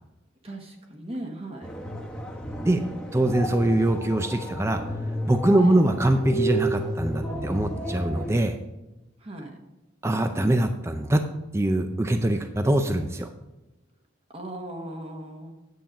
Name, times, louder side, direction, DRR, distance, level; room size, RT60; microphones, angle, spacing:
voice 1, 0.4-1.7 5.6-5.9 9.2-9.6 14.3-15.5, right 1 dB, 30° right, 2 dB, 1.1 m, -38 dB
sound 1, 1.6-8.4, right 1 dB, 5° left, 1.1 m, -32 dB
voice 2, 3.1-4.8 5.3-8.6 10.0-11.2 11.5-13.3, right 1 dB, 15° right, 7 dB, 0.4 m, -23 dB
9.4 x 7.4 x 5.0 m, 1.0 s
head